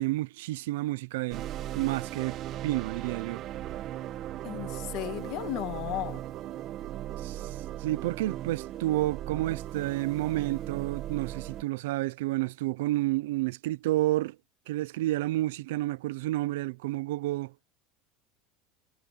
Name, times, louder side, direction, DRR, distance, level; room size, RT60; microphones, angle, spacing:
voice 1, 0.0-1.5 1.7-2.4 2.6-3.4 7.2-14.4 14.7-17.5, right 17 dB, 85° right, 0.8 m, -30 dB
sound 1, 1.3-11.6, right 12 dB, 45° right, 2.0 m, -38 dB
voice 2, 4.4-6.2, left 18 dB, 55° left, 2.0 m, -35 dB
supercardioid pair, 140°, 0 cm